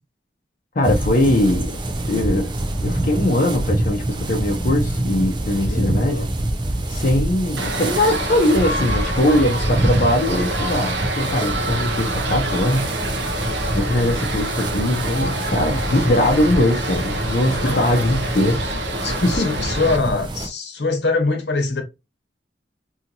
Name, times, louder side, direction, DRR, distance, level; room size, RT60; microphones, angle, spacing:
voice 1, 0.8-1.7 2.1-2.5 2.8-6.3 6.9-12.9 13.7-18.7 19.1-19.5, left 1 dB, 50° left, 0.6 m, -20 dB
sound 1, 0.8-20.5, right 1 dB, 25° right, 0.4 m, -25 dB
voice 2, 5.7-6.3 17.6-17.9 19.0-21.8, left 3 dB, 80° left, 0.9 m, -23 dB
sound 2, 7.6-20.0, right 1 dB, 80° right, 0.7 m, -27 dB
2.8 x 2.5 x 2.8 m
head